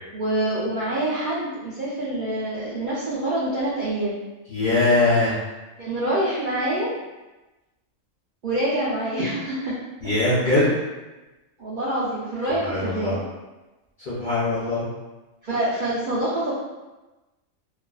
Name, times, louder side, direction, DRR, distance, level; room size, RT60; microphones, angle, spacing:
voice 1, 0.1-4.2 5.8-6.9 8.4-9.7 11.6-13.2 15.4-16.5, right 1 dB, 75° right, -8 dB, 0.4 m, -26 dB
voice 2, 4.5-5.4 10.0-10.7 12.6-13.2 14.0-14.9, left 2 dB, 60° left, -9 dB, 0.5 m, -21 dB
2.4 x 2.3 x 2.2 m, 1.1 s
omnidirectional pair, 1.5 m